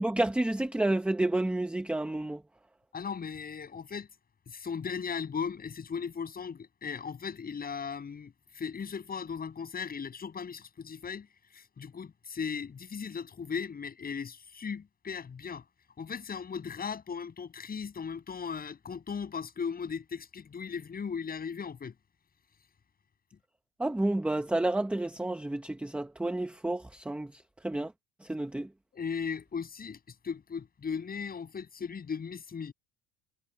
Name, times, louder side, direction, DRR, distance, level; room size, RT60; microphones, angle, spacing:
voice 1, 0.0-2.4 23.8-27.9 28.3-28.7, right 1 dB, 5° right, 0.8 m, -30 dB
voice 2, 2.9-4.1 4.5-11.3 11.5-15.6 16.0-21.9 28.9-30.0 30.2-32.7, left 6 dB, 20° left, 7.4 m, -37 dB
cardioid pair, 160°, 40 cm